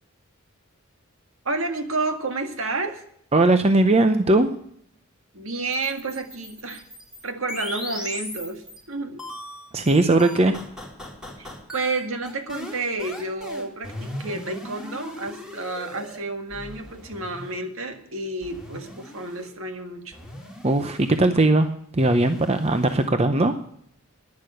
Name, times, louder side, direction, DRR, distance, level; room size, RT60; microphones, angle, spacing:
voice 1, 1.5-3.0 5.3-6.8 7.2-9.2 11.4-11.5 11.7-20.2, right 3 dB, 65° right, 6 dB, 1.8 m, -30 dB
voice 2, 3.3-4.5 9.7-10.6 20.6-23.5, right 2 dB, 30° right, 8 dB, 0.7 m, -19 dB
sound 1, 5.7-8.8 9.2-16.2 16.5-17.6 18.4-19.5 20.1-21.2 22.0-23.1, left 1 dB, 5° right, 3.5 m, -38 dB
11.5 x 10.5 x 6.4 m, 0.67 s
head